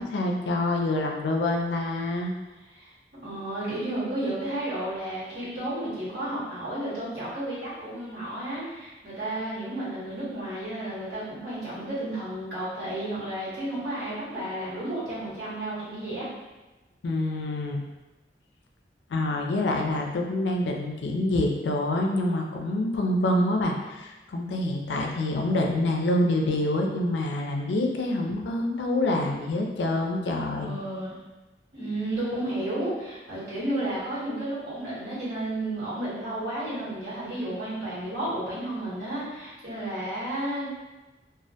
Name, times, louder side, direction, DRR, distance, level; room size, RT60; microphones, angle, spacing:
voice 1, 0.0-2.3 17.0-17.8 19.1-30.7, left 1 dB, 75° left, 2 dB, 0.4 m, -26 dB
voice 2, 3.2-16.3 30.6-31.2 31.7-40.7, right 1 dB, 70° right, -11 dB, 1.1 m, -32 dB
2.1 x 2.1 x 2.7 m, 1.1 s
head